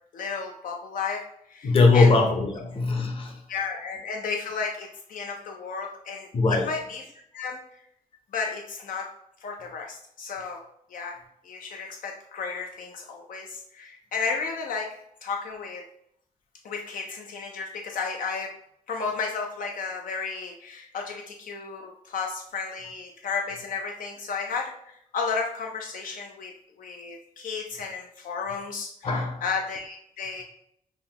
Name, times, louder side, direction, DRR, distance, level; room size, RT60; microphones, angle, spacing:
voice 1, 0.1-2.1 3.5-7.0 7.3-7.6 8.3-9.1 9.4-10.6 10.9-11.2 11.4-14.9 15.2-15.9 16.6-18.5 18.9-30.4, left 5 dB, 75° left, 2 dB, 0.5 m, -33 dB
voice 2, 1.6-3.4 6.3-6.7 29.0-29.4, left 3 dB, 40° left, 2 dB, 0.7 m, -21 dB
5.6 x 2.1 x 2.8 m, 0.72 s
wide cardioid pair, 145°, 14 cm